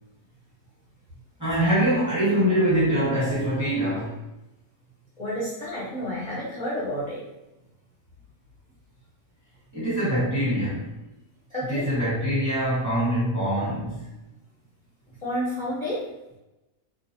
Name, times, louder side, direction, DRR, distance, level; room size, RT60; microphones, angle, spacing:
voice 1, 1.4-4.2 9.7-11.0 11.7-14.1, equal, 15° right, -9 dB, 0.9 m, -24 dB
voice 2, 5.2-7.3 11.5-11.9 15.2-16.1, equal, 40° left, -10 dB, 0.6 m, -30 dB
2.5 x 2.0 x 2.6 m, 0.97 s
omnidirectional pair, 1.5 m